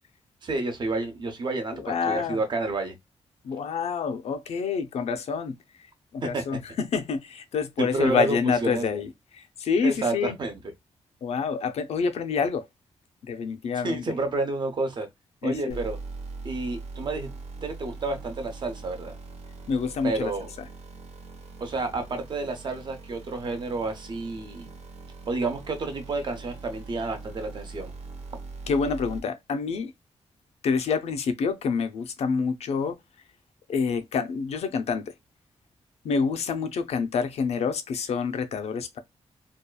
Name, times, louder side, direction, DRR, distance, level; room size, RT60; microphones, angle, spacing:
voice 1, 0.4-2.9 6.2-6.4 7.8-8.9 9.8-10.6 13.8-15.1 15.4-16.0 16.4-17.3 17.6-19.1 20.0-20.5 21.6-24.7 25.3-27.9, right 3 dB, 45° right, 0.7 m, -30 dB
voice 2, 1.7-2.4 3.4-5.6 6.1-10.4 11.2-12.6 13.2-14.0 15.4-15.8 19.7-20.3 20.6-20.7 28.7-29.9 30.6-33.0 33.7-35.1 36.0-39.0, left 5 dB, 75° left, 0.4 m, -27 dB
sound 1, 15.7-29.2, right 3 dB, 85° right, 0.8 m, -42 dB
2.8 x 2.3 x 2.2 m
wide cardioid pair, 175°, 11 cm